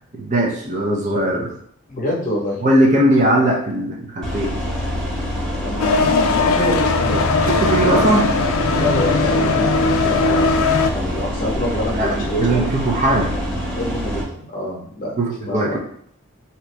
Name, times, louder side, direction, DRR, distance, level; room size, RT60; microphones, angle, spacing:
voice 1, 0.2-1.5 2.6-4.5 7.5-8.3 11.9-13.6 15.2-15.8, right 1 dB, 35° right, -2 dB, 0.6 m, -19 dB
voice 2, 1.9-2.6 5.5-7.2 7.9-8.1 8.8-12.7 13.7-15.1 15.5-15.8, equal, 40° left, -2 dB, 0.9 m, -26 dB
sound 1, 4.2-14.2, equal, 5° left, 0.7 m, -26 dB
sound 2, 5.8-10.9, left 3 dB, 85° left, 0.4 m, -18 dB
2.9 x 2.6 x 3.3 m, 0.64 s
head